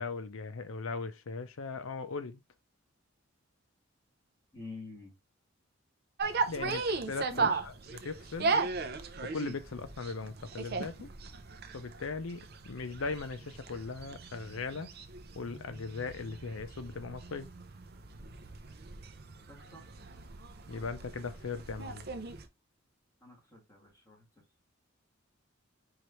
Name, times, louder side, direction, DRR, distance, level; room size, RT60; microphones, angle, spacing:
voice 1, 0.0-2.4 6.5-6.8 7.1-8.6 9.2-11.1 11.7-14.9 15.3-17.5 20.7-22.0, left 4 dB, 80° left, 0.6 m, -39 dB
voice 2, 4.5-5.1 6.6-6.7 7.3-7.6 19.5-19.9 23.2-24.2, left 2 dB, 15° left, 2.1 m, -47 dB
sound 1, 6.2-22.4, right 4 dB, 50° right, 0.6 m, -37 dB
4.7 x 3.2 x 3.0 m
head